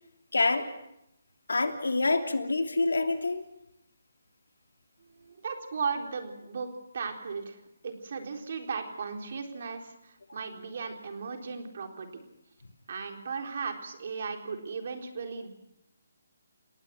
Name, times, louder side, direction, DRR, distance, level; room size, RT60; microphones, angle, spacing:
voice 1, 0.3-0.7 1.5-3.4, left 3 dB, 85° left, 5 dB, 3.0 m, -26 dB
voice 2, 5.1-12.2 12.9-15.5, right 5 dB, 55° right, 3 dB, 4.0 m, -36 dB
30.0 x 18.5 x 6.0 m, 0.81 s
figure-of-eight pair, 150°, 0 cm